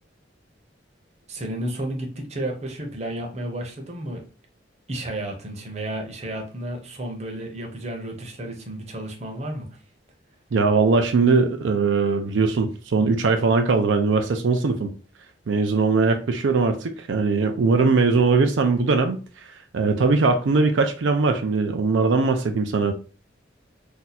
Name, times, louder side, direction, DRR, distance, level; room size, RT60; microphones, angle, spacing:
voice 1, 1.3-4.2 4.9-9.7, right 1 dB, 35° right, 2 dB, 0.7 m, -32 dB
voice 2, 10.5-14.9 15.5-19.5 19.7-22.9, right 4 dB, 80° right, 5 dB, 0.4 m, -20 dB
2.7 x 2.3 x 4.0 m, 0.37 s
head